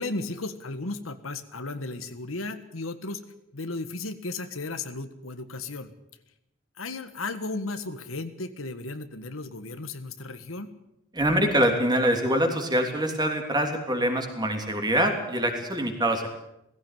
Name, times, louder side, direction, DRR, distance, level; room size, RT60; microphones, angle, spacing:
voice 1, 0.0-3.2 3.5-5.9 6.8-10.7, left 2 dB, 90° left, 10 dB, 1.6 m, -35 dB
voice 2, 11.1-16.3, right 1 dB, 20° right, 4 dB, 3.2 m, -24 dB
18.0 x 16.0 x 9.3 m, 0.86 s
head